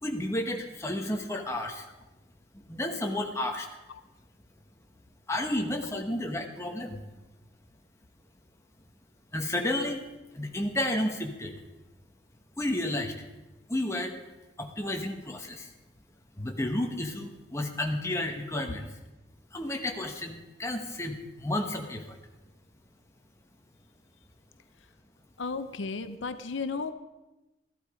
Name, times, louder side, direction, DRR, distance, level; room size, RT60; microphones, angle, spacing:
voice 1, 0.0-1.9 2.5-3.7 5.3-7.0 9.3-10.1 10.3-11.6 12.6-13.2 13.7-14.2 14.6-15.7 16.4-18.8 19.5-22.2, left 1 dB, 15° left, 2 dB, 1.2 m, -32 dB
voice 2, 25.4-26.9, left 4 dB, 75° left, 11 dB, 0.7 m, -34 dB
14.0 x 11.5 x 5.0 m, 1.0 s
head